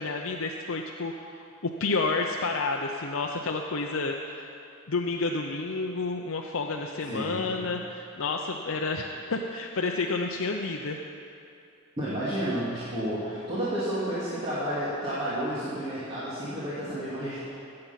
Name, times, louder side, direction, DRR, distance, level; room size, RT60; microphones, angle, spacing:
voice 1, 0.0-1.5 1.8-4.5 4.9-11.0, left 3 dB, 65° left, 1 dB, 0.7 m, -30 dB
voice 2, 7.0-7.7 12.0-17.5, right 1 dB, 25° right, -11 dB, 2.4 m, -31 dB
17.0 x 7.7 x 5.8 m, 2.6 s
head